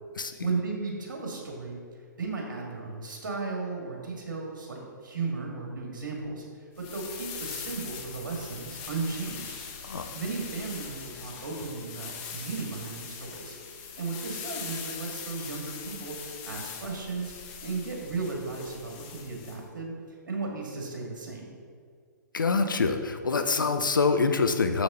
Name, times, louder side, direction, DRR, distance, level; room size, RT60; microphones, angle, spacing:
voice 1, 0.4-1.8 2.2-9.6 10.1-13.5 14.0-16.2 16.4-17.3 17.6-19.9 20.3-21.5, right 4 dB, 75° right, -1 dB, 2.0 m, -35 dB
sound 1, 6.8-19.6, left 7 dB, 35° left, 1.0 m, -41 dB
voice 2, 22.3-24.8, left 4 dB, 85° left, 8 dB, 0.7 m, -25 dB
7.1 x 6.0 x 3.8 m, 2.1 s
hypercardioid pair, 130°, 10 cm